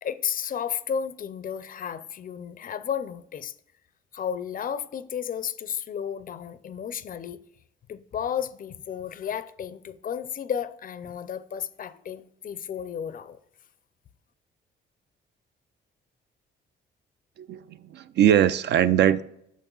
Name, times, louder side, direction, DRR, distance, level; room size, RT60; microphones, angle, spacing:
voice 1, 0.0-3.5 4.1-7.4 7.9-13.4, left 8 dB, 45° left, 0.4 m, -33 dB
voice 2, 17.4-19.2, right 10 dB, 60° right, 0.4 m, -21 dB
9.0 x 6.4 x 2.3 m
cardioid pair, 90°, 20 cm